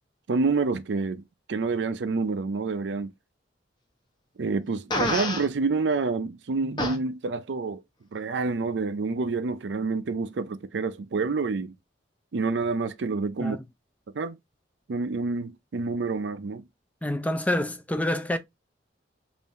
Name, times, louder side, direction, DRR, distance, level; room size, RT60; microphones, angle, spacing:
voice 1, 0.3-3.1 4.4-7.8 8.1-11.7 12.3-13.6 14.1-14.4 14.9-16.6, right 4 dB, 70° right, 0.5 m, -28 dB
Fart, 4.9-5.5 6.8-7.0, left 1 dB, 25° left, 1.0 m, -26 dB
voice 2, 17.0-18.4, left 1 dB, 10° left, 0.4 m, -27 dB
3.6 x 2.6 x 4.0 m
head